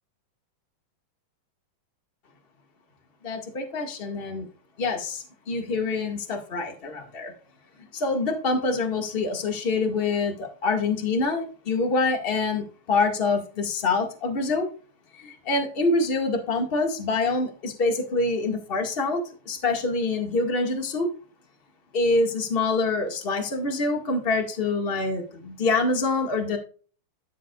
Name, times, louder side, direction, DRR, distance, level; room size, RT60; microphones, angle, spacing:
voice 1, 3.2-4.5 4.8-7.3 7.9-14.7 15.2-19.2 19.4-21.1 21.9-26.6, left 3 dB, 25° left, 2 dB, 1.2 m, -25 dB
13.5 x 7.7 x 2.4 m, 0.40 s
omnidirectional pair, 4.0 m